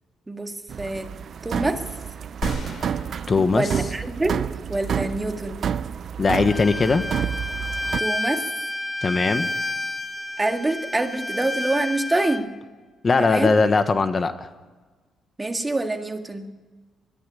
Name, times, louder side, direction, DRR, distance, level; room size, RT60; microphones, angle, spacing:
voice 1, 0.3-1.1 1.4-1.9 3.5-4.4 4.7-5.6 8.0-8.4 10.4-12.5 13.2-13.5 15.4-16.5, right 2 dB, 15° right, 6 dB, 1.9 m, -26 dB
sound 1, 0.7-8.0, right 8 dB, 55° right, 0.6 m, -29 dB
sound 2, 2.4-4.7, left 3 dB, 55° left, 4.1 m, -38 dB
voice 2, 3.3-3.7 6.2-7.0 9.0-9.5 13.0-14.5, left 4 dB, 35° left, 10 dB, 1.3 m, -20 dB
Bowed string instrument, 6.5-12.4, left 1 dB, 5° left, 1.7 m, -30 dB
21.0 x 14.5 x 10.0 m, 1.3 s
cardioid pair, 90°, 0 cm